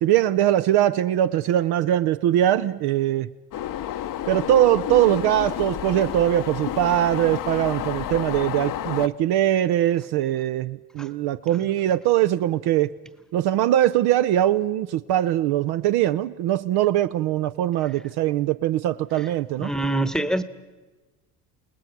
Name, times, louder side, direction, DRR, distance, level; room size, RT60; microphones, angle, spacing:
voice 1, 0.0-3.3 4.3-12.9 13.3-19.7, right 12 dB, 55° right, 0.7 m, -21 dB
Tram Budapest Stopping, 3.5-9.1, left 11 dB, 45° left, 0.8 m, -30 dB
voice 2, 19.6-20.4, right 1 dB, ahead, 1.1 m, -24 dB
29.0 x 19.0 x 5.9 m
hypercardioid pair, 70°, 45 cm